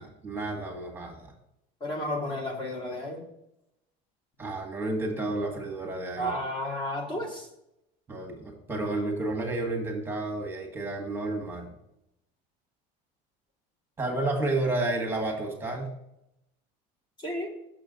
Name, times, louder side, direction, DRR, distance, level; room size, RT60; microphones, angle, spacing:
voice 1, 0.0-1.3 4.4-6.3 8.1-11.7 14.0-15.9, right 2 dB, 15° right, 1 dB, 1.4 m, -31 dB
voice 2, 1.8-3.2 6.2-7.5 17.2-17.5, left 1 dB, 25° left, 1 dB, 1.2 m, -32 dB
6.2 x 6.0 x 3.9 m, 0.83 s
cardioid pair, 140°, 18 cm